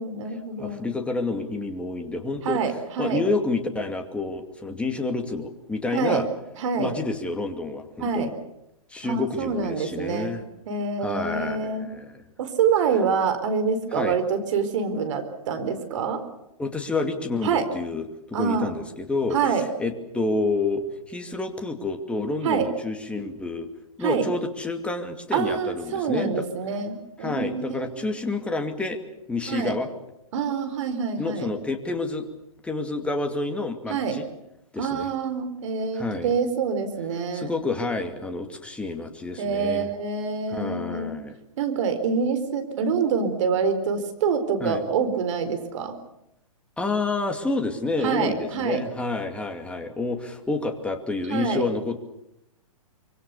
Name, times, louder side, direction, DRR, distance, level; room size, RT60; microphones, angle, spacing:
voice 1, 0.0-0.8 2.4-3.2 5.9-6.3 6.6-6.9 8.0-8.3 9.0-10.3 10.7-11.9 12.4-16.2 17.4-17.7 18.3-18.7 19.3-19.7 22.4-22.7 24.0-24.2 25.3-28.1 29.5-29.7 30.3-31.5 33.9-34.2 34.8-37.5 39.4-41.1 41.6-45.9 48.0-48.8 51.3-51.6, right 5 dB, 55° right, 9 dB, 4.3 m, -26 dB
voice 2, 0.6-2.6 3.0-6.3 6.8-8.3 8.9-10.4 11.0-12.2 13.9-14.2 16.6-23.7 24.0-26.4 27.2-29.0 29.3-29.9 31.2-32.2 32.6-34.2 34.7-35.1 35.9-36.3 37.3-39.9 40.5-41.4 44.6-44.8 46.8-52.0, left 3 dB, 5° left, 5 dB, 2.5 m, -29 dB
25.0 x 24.0 x 7.0 m, 0.84 s
hypercardioid pair, 130°, 19 cm